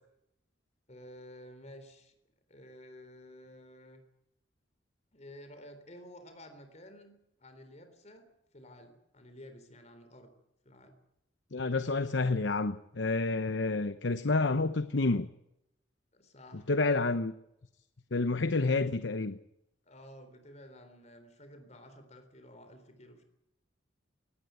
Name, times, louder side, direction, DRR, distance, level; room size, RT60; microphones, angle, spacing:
voice 1, 0.9-2.1 2.5-4.0 5.1-10.3 10.7-11.0 16.1-17.1 19.9-23.2, left 1 dB, 40° left, 8 dB, 3.6 m, -52 dB
voice 2, 11.5-15.3 16.7-17.3 18.1-19.3, left 3 dB, 75° left, 12 dB, 0.9 m, -29 dB
18.5 x 17.5 x 9.3 m, 0.84 s
head